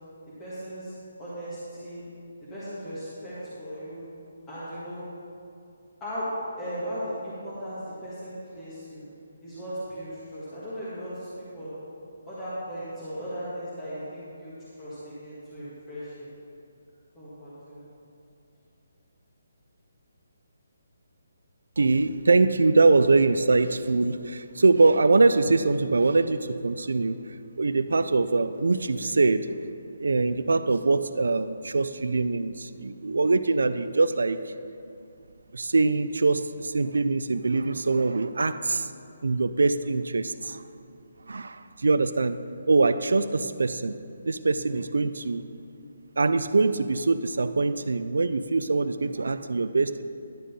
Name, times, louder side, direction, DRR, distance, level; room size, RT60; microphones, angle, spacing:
voice 1, 0.4-2.0 2.4-4.0 4.5-5.0 6.0-6.2 6.6-9.0 9.4-11.3 11.5-11.7 12.3-16.3 17.1-17.9, equal, 10° left, -12 dB, 1.6 m, -37 dB
voice 2, 21.8-27.2 27.6-29.6 30.0-34.4 35.5-38.9 39.2-40.6 41.3-42.4 42.7-44.0 44.3-45.4 46.2-50.0, right 3 dB, 85° right, 12 dB, 0.3 m, -23 dB
10.5 x 3.7 x 6.8 m, 2.6 s
hypercardioid pair, 165°, 0 cm